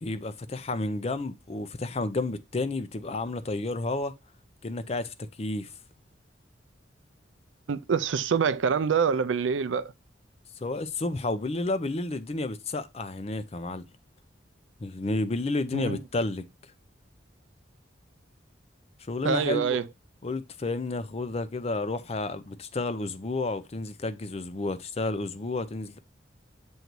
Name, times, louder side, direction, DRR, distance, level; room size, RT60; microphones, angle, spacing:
voice 1, 0.0-4.1 4.6-5.7 10.6-13.9 14.8-16.4 19.1-19.8 20.2-26.0, left 2 dB, 35° left, 0.5 m, -31 dB
voice 2, 7.7-9.9 15.7-16.0 19.2-19.9, right 6 dB, 90° right, 0.4 m, -26 dB
7.9 x 2.7 x 4.5 m
head